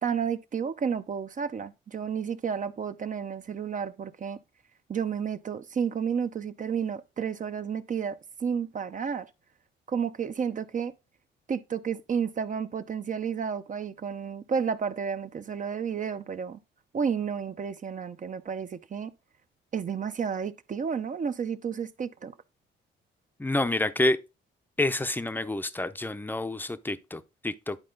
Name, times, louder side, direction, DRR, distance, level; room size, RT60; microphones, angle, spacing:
voice 1, 0.0-4.4 4.9-9.3 9.9-10.9 11.5-16.6 16.9-19.1 19.7-22.3, right 7 dB, 40° right, 0.8 m, -31 dB
voice 2, 23.4-24.2 24.8-27.8, left 2 dB, 10° left, 0.7 m, -28 dB
10.5 x 4.3 x 3.9 m
cardioid pair, 90°, 20 cm